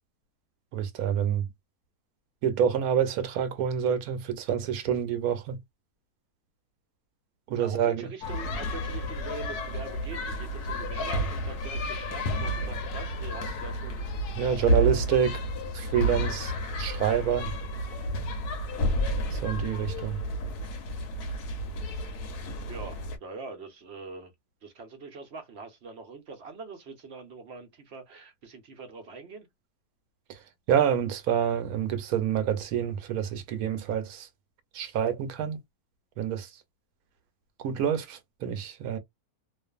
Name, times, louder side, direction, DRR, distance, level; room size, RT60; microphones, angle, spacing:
voice 1, 0.7-1.5 2.4-5.6 7.5-8.1 14.3-15.4 15.7-16.5 16.8-17.5 19.3-20.2 30.3-30.4 30.7-34.3 34.7-35.6 36.2-36.5 37.6-39.0, right 8 dB, 75° right, 1.1 m, -27 dB
voice 2, 7.6-14.0 22.7-24.3 24.6-29.5, right 4 dB, 55° right, 0.8 m, -43 dB
sound 1, 8.2-23.2, equal, 85° left, 1.1 m, -31 dB
2.5 x 2.5 x 2.3 m
omnidirectional pair, 1.7 m